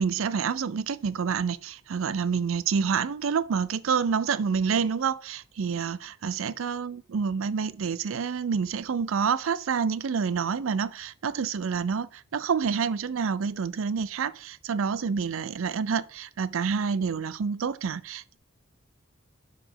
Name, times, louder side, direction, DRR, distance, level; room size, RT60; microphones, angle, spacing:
voice 1, 0.0-18.4, right 6 dB, 80° right, 0.4 m, -28 dB
5.0 x 4.9 x 5.5 m
head